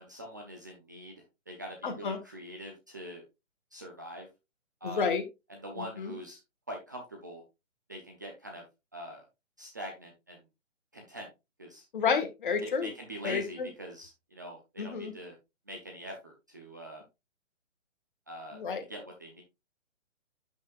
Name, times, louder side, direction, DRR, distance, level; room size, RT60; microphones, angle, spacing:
voice 1, 0.0-3.2 3.7-4.3 4.8-5.1 5.5-6.4 6.7-7.4 7.9-8.6 8.9-9.2 9.6-10.4 10.9-11.3 11.6-11.8 12.6-15.3 15.7-17.0 18.3-18.6 18.9-19.4, equal, 15° right, 1 dB, 0.6 m, -43 dB
voice 2, 1.8-2.2 4.8-5.2 5.8-6.1 11.9-12.9 13.2-13.7 14.8-15.1 18.5-18.8, left 5 dB, 40° left, 7 dB, 1.7 m, -30 dB
11.0 x 6.3 x 2.4 m, 0.24 s
hypercardioid pair, 165°, 38 cm